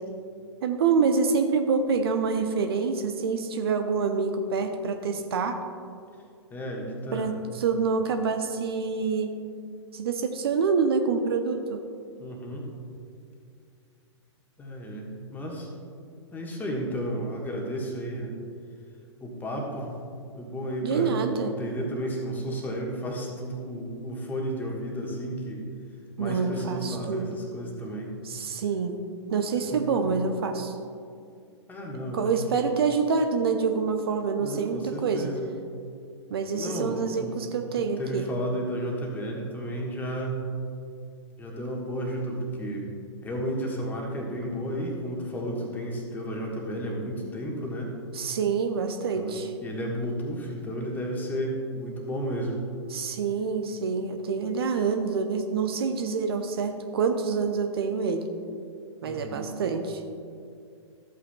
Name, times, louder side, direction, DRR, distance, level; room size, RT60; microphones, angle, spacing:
voice 1, 0.6-5.6 7.1-9.4 9.9-11.8 20.8-21.6 26.2-27.3 28.2-29.0 29.3-30.8 32.1-35.3 36.3-38.3 48.1-49.5 52.9-58.2 59.0-60.0, right 5 dB, 55° right, 6 dB, 0.7 m, -26 dB
voice 2, 6.5-7.3 12.2-12.7 14.6-15.7 16.3-18.3 19.2-19.9 20.4-21.1 21.4-25.6 26.2-28.1 29.7-30.2 31.7-32.6 34.4-35.4 36.6-37.3 37.8-40.4 41.4-42.9 43.2-47.9 49.1-52.6 59.0-59.5, equal, 10° left, -1 dB, 1.5 m, -33 dB
14.0 x 8.5 x 2.3 m, 2.4 s
figure-of-eight pair, 110°, 15 cm